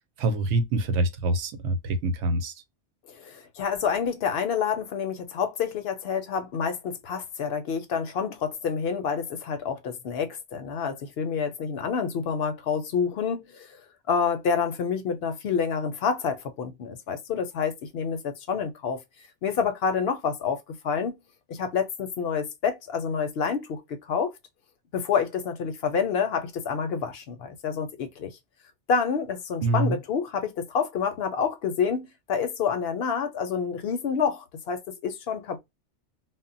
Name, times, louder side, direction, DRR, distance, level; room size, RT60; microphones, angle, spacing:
voice 1, 0.2-2.5 29.6-30.0, right 2 dB, 80° right, 0.9 m, -25 dB
voice 2, 3.1-13.7 14.1-19.0 19.4-20.6 20.8-21.1 21.5-23.8 24.1-24.3 24.9-28.3 28.9-35.6, left 6 dB, 65° left, 0.7 m, -28 dB
2.2 x 2.0 x 3.7 m
omnidirectional pair, 1.2 m